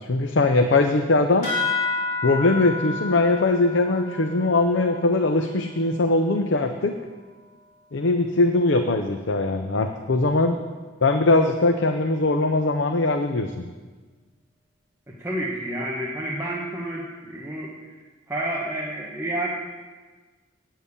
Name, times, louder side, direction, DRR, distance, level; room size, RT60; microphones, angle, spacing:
voice 1, 0.1-1.5 2.2-7.0 7.9-10.6 11.0-13.7, left 2 dB, 65° left, 6 dB, 0.6 m, -21 dB
sound 1, 1.4-6.4, left 4 dB, 45° left, 3.5 m, -31 dB
voice 2, 15.2-17.7 18.3-19.5, right 1 dB, 15° right, -5 dB, 1.1 m, -29 dB
9.0 x 7.3 x 8.3 m, 1.4 s
head